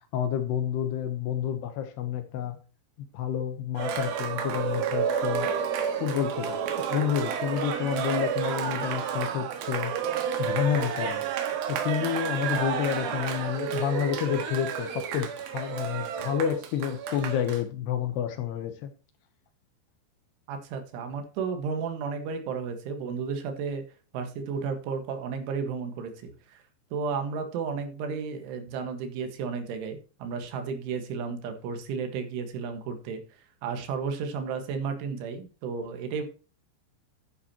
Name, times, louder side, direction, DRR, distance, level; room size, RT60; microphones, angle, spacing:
voice 1, 0.1-2.6 3.1-5.5 5.9-10.0 10.4-11.2 11.7-18.9, left 9 dB, 70° left, 2.8 m, -29 dB
Cheering, 3.8-17.6, right 7 dB, 65° right, 2.9 m, -30 dB
voice 2, 20.5-23.8 24.1-26.6 26.9-33.2 33.6-36.2, right 5 dB, 85° right, 4.1 m, -33 dB
11.0 x 10.0 x 3.0 m
omnidirectional pair, 5.4 m